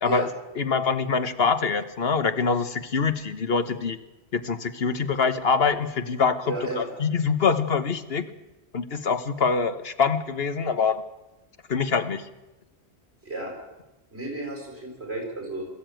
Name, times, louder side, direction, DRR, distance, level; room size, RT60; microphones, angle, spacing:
voice 1, 0.6-4.0 4.3-8.3 8.7-11.0 11.7-12.2, left 5 dB, 65° left, 11 dB, 1.4 m, -24 dB
voice 2, 6.5-6.8 13.2-13.5 14.1-15.7, right 2 dB, 70° right, 1 dB, 6.9 m, -32 dB
22.0 x 14.5 x 9.1 m, 0.98 s
omnidirectional pair, 1.1 m